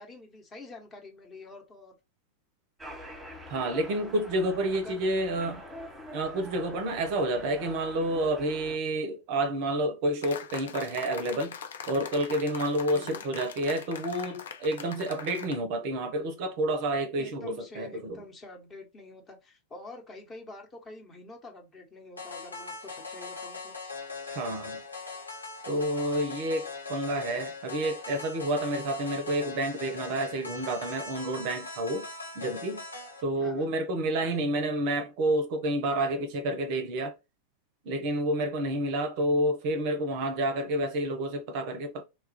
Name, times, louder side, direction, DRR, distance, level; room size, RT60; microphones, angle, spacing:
voice 1, 0.0-2.0 4.7-5.0 12.9-13.2 17.2-23.7 33.4-33.7 34.2-34.4, left 2 dB, 20° left, 0.9 m, -47 dB
sound 1, 2.8-8.8, equal, 5° right, 1.0 m, -45 dB
voice 2, 3.5-5.6 6.1-11.6 11.9-18.2 24.3-24.8 25.7-32.1 32.4-32.8 33.2-37.1 37.9-42.0, right 1 dB, 45° right, 0.5 m, -29 dB
sound 2, 10.2-15.6, left 7 dB, 65° left, 0.4 m, -41 dB
sound 3, 22.2-33.2, left 4 dB, 80° left, 0.9 m, -40 dB
3.0 x 2.3 x 2.8 m
figure-of-eight pair, 90°, 0 cm